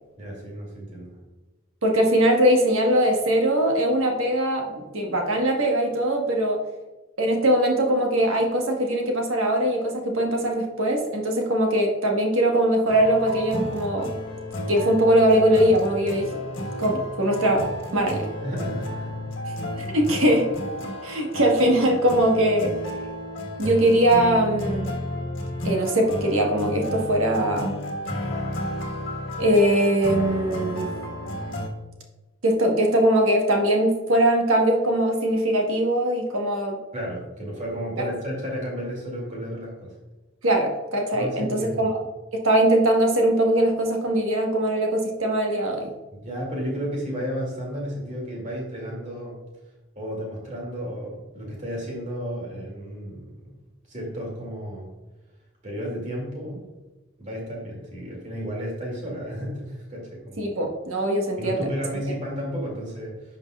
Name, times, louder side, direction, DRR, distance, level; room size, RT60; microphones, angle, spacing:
voice 1, 0.2-1.1 18.4-19.2 36.9-40.0 41.1-41.9 46.1-49.4 50.0-53.4 53.9-54.9 55.6-56.7 57.2-60.6 61.4-63.1, equal, 35° right, -2 dB, 2.4 m, -33 dB
voice 2, 1.8-6.6 7.2-14.1 14.7-16.3 16.8-18.3 19.8-20.5 21.0-22.8 23.6-25.0 25.6-27.7 29.4-30.9 32.4-36.8 38.0-38.1 40.4-41.9 42.3-45.9 60.4-61.7, right 1 dB, 75° right, 1 dB, 1.4 m, -21 dB
sound 1, 12.9-31.7, left 1 dB, 65° left, 1.5 m, -32 dB
10.5 x 5.4 x 2.4 m, 1.1 s
head